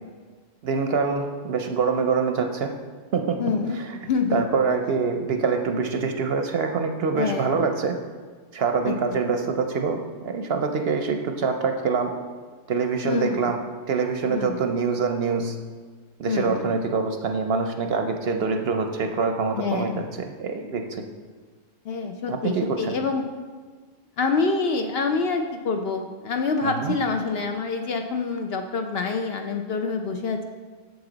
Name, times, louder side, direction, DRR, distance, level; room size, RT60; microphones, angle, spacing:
voice 1, 0.6-2.7 3.1-3.4 3.7-4.0 4.3-7.9 8.5-12.1 12.7-13.6 13.9-15.6 16.2-21.0 22.3-23.0 26.6-26.9, right 5 dB, 60° right, 5 dB, 0.7 m, -25 dB
voice 2, 3.4-3.8 4.0-4.4 7.2-7.6 8.8-8.9 13.0-13.5 14.3-14.6 16.3-16.7 19.6-20.1 21.9-23.2 24.2-30.4, left 4 dB, 60° left, 5 dB, 0.7 m, -26 dB
7.9 x 6.9 x 3.9 m, 1.5 s
omnidirectional pair, 1.3 m